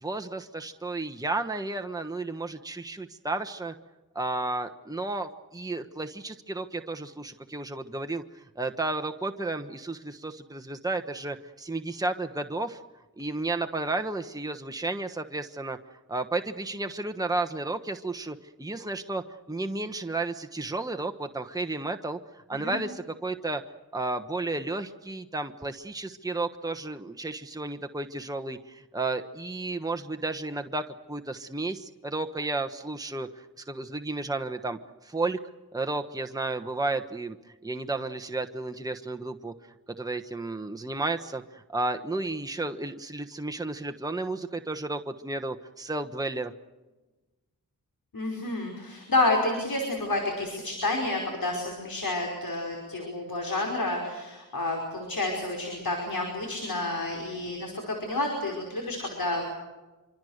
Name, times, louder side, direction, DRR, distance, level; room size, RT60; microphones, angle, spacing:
voice 1, 0.0-3.7 4.1-12.8 13.2-15.8 16.1-23.6 23.9-35.4 35.7-37.4 37.6-39.5 40.0-46.5, right 2 dB, 10° right, 6 dB, 1.2 m, -32 dB
voice 2, 48.1-59.4, left 2 dB, 70° left, 1 dB, 5.4 m, -29 dB
26.0 x 25.0 x 6.6 m, 1.2 s
wide cardioid pair, 65°, 37 cm